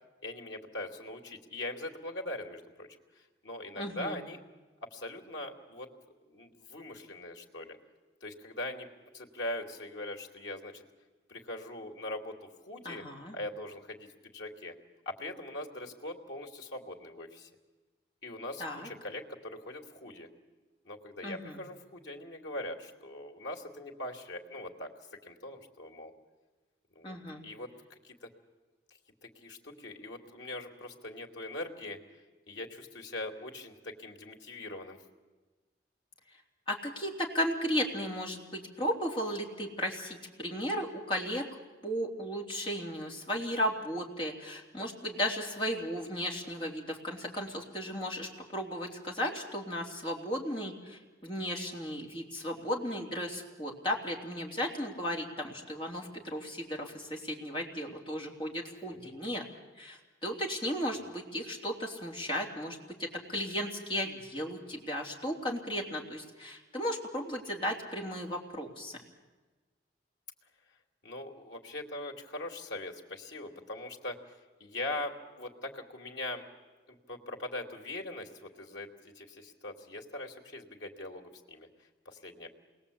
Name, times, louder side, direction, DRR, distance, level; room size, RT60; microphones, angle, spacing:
voice 1, 0.2-2.9 3.4-4.4 4.8-5.9 6.3-7.8 8.2-8.9 9.1-10.8 11.3-13.0 13.3-14.7 15.1-17.5 18.2-20.3 20.8-24.9 25.2-26.1 26.9-27.2 27.4-27.7 28.0-28.3 29.2-32.0 32.5-35.0 58.9-59.1 71.0-74.2 74.6-76.4 76.9-81.7 82.0-82.5, left 1 dB, 85° left, 2 dB, 2.7 m, -41 dB
voice 2, 3.8-4.2 12.8-13.3 18.6-18.9 21.2-21.6 27.0-27.4 36.7-41.5 41.8-59.4 59.8-69.0, equal, 30° left, 0 dB, 3.3 m, -35 dB
28.0 x 21.0 x 8.5 m, 1.3 s
head